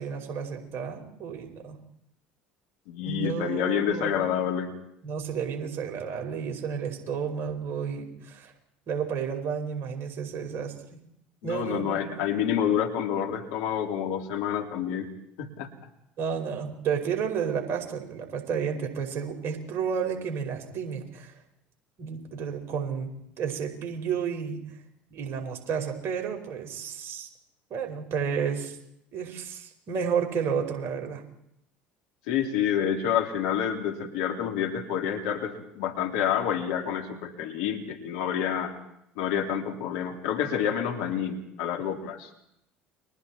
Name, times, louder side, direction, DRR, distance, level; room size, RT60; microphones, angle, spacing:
voice 1, 0.0-1.8 3.0-4.2 5.0-8.5 8.9-10.7 11.4-12.1 16.2-21.4 22.0-23.1 23.4-24.6 25.1-27.3 27.7-28.8 29.1-31.2, right 7 dB, 50° right, 3 dB, 5.3 m, -31 dB
voice 2, 2.9-4.7 11.4-15.1 15.4-15.7 32.3-38.7 39.2-42.3, left 9 dB, 70° left, 4 dB, 3.2 m, -28 dB
30.0 x 23.5 x 4.4 m, 0.77 s
hypercardioid pair, 70°, 6 cm